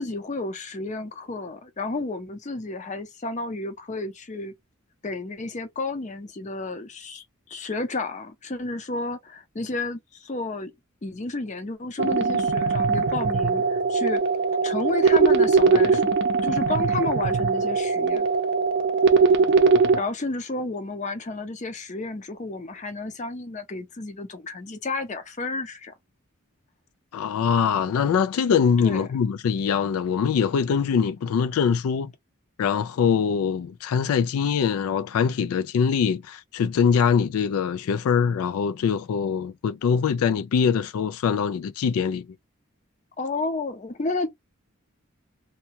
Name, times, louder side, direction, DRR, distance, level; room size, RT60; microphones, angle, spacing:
voice 1, 0.0-4.5 5.0-10.7 11.0-14.2 14.6-16.1 16.4-18.3 20.0-25.9 28.8-29.1 43.2-44.3, left 3 dB, 35° left, 0.5 m, -31 dB
sound 1, 12.0-20.0, right 4 dB, 50° right, 0.5 m, -21 dB
voice 2, 27.1-32.1 32.6-42.3, left 6 dB, 85° left, 0.3 m, -23 dB
2.8 x 2.2 x 2.8 m
head